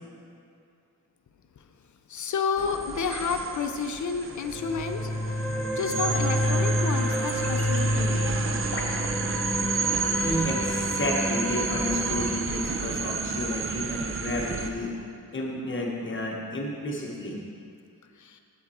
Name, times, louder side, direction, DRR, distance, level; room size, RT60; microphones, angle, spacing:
voice 1, 2.1-8.3 9.0-9.1 13.4-13.7 18.1-18.4, left 5 dB, 55° left, 6 dB, 0.4 m, -31 dB
sound 1, 2.6-14.7, right 5 dB, 35° right, 0.4 m, -31 dB
sound 2, 4.4-12.3, equal, 5° left, 0.6 m, -28 dB
voice 2, 10.2-14.9 15.3-17.4, left 1 dB, 30° left, -2 dB, 1.0 m, -31 dB
7.4 x 5.7 x 4.2 m, 2.5 s
wide cardioid pair, 155°, 37 cm